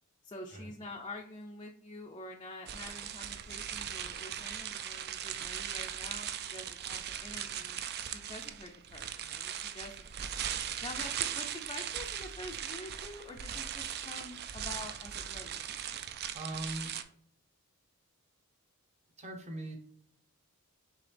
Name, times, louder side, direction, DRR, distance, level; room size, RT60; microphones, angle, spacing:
voice 1, 0.2-7.8 8.1-10.4 10.8-15.6, left 2 dB, 20° left, 1 dB, 0.4 m, -47 dB
sound 1, 2.7-17.0, right 9 dB, 45° right, 0.4 m, -39 dB
voice 2, 16.3-16.9 19.2-19.8, right 1 dB, 30° right, 3 dB, 0.8 m, -40 dB
4.9 x 3.3 x 3.3 m, 0.62 s
head